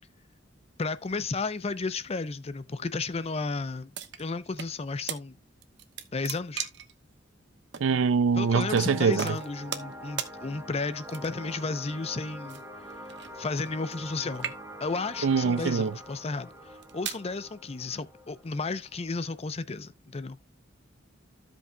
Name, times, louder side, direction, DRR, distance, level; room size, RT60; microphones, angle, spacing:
voice 1, 0.8-3.9 4.2-5.4 6.1-6.7 8.3-12.6 13.4-14.5 14.8-20.4, left 3 dB, 35° left, 0.6 m, -33 dB
sound 1, 3.9-4.7 5.1-5.2 5.6-6.9 7.7-7.9 8.7-8.9 9.2-9.9 10.2-10.3 11.1-11.5 12.5-14.1 14.3-14.9 15.6-15.9 16.6-17.2, right 8 dB, 65° right, 1.0 m, -37 dB
voice 2, 7.8-9.2 15.2-15.9, right 5 dB, 90° right, 0.5 m, -23 dB
sound 2, 8.3-19.4, equal, 15° right, 1.2 m, -44 dB
15.0 x 5.4 x 2.2 m
head